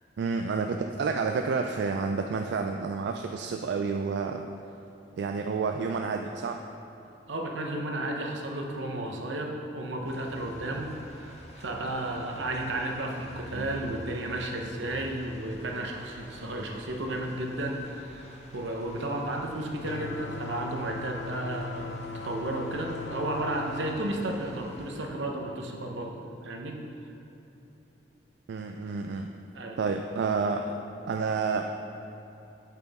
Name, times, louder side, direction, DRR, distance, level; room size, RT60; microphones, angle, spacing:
voice 1, 0.2-4.4 5.2-6.6 13.5-13.7 28.5-29.3 29.8-30.7 31.1-31.6, right 4 dB, 65° right, 4 dB, 0.3 m, -29 dB
voice 2, 7.3-22.0 22.2-26.2 26.4-26.8 29.5-29.8, right 1 dB, 80° right, 1 dB, 0.9 m, -33 dB
sound 1, 10.0-25.1, left 1 dB, 35° left, 0.9 m, -50 dB
sound 2, 19.8-24.0, left 4 dB, 80° left, 0.4 m, -39 dB
9.0 x 5.9 x 3.6 m, 3.0 s
head